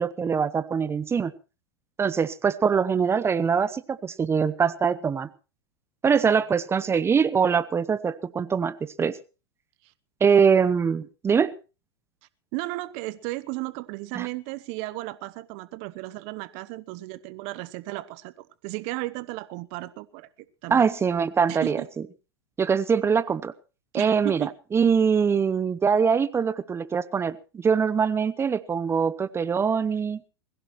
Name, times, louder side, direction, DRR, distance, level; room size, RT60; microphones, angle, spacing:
voice 1, 0.0-1.3 2.0-5.3 6.0-9.2 10.2-11.5 14.1-14.3 20.7-21.8 22.6-23.5 23.9-30.2, right 6 dB, 20° right, 17 dB, 0.8 m, -23 dB
voice 2, 12.5-20.3 20.6-20.9 21.5-21.9 23.9-24.5, right 20 dB, 50° right, 18 dB, 0.9 m, -34 dB
21.5 x 16.0 x 3.1 m, 0.32 s
hypercardioid pair, 110°, 14 cm